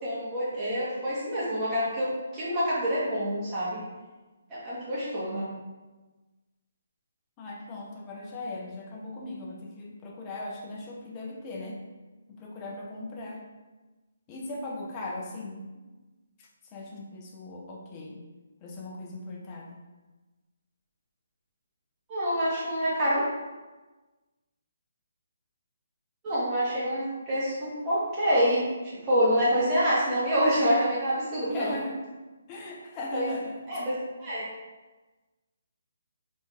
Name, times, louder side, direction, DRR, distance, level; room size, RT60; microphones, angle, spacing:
voice 1, 0.0-3.8 4.5-5.5 22.1-23.2 26.2-31.7 33.1-33.3 33.7-33.9 34.2-34.4, equal, 15° right, -9 dB, 1.4 m, -27 dB
voice 2, 7.4-11.8 12.3-13.4 14.3-15.6 16.4-18.2 18.6-19.8 31.4-32.0 32.5-33.6, left 2 dB, 20° left, -1 dB, 0.6 m, -38 dB
4.0 x 3.4 x 3.1 m, 1.2 s
hypercardioid pair, 165°, 0 cm